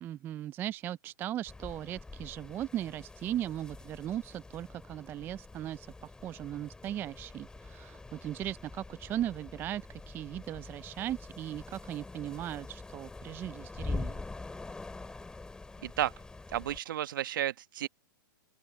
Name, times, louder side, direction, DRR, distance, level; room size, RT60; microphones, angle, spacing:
voice 1, 0.0-14.2, right 12 dB, 20° right, 0.3 m, -38 dB
sound 1, 1.5-16.8, left 3 dB, 5° left, 2.3 m, -45 dB
voice 2, 15.8-16.1 16.5-17.9, right 12 dB, 70° right, 1.5 m, -32 dB
open air
hypercardioid pair, 135°, 12 cm